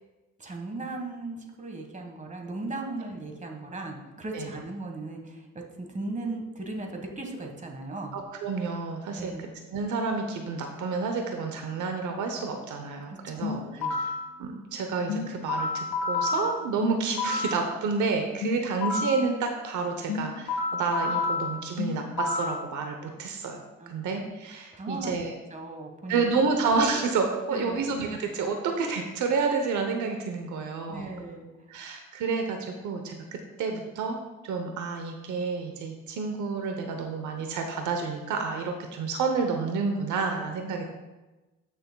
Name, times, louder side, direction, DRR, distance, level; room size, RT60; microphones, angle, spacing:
voice 1, 0.4-8.1 9.1-9.4 13.3-13.9 23.8-24.1 24.7-25.1 25.5-26.5 27.5-27.8 30.9-31.5 31.7-31.8, right 2 dB, 25° right, 2 dB, 1.5 m, -37 dB
voice 2, 8.1-14.1 14.4-25.3 26.1-31.1 31.7-34.2 34.4-40.9, right 4 dB, 80° right, 4 dB, 0.9 m, -29 dB
sound 1, 13.4-14.3 15.1-17.6 18.4-19.3 20.1-22.6, left 4 dB, 80° left, 1.4 m, -30 dB
13.0 x 6.4 x 2.3 m, 1.1 s
cardioid pair, 90°, 30 cm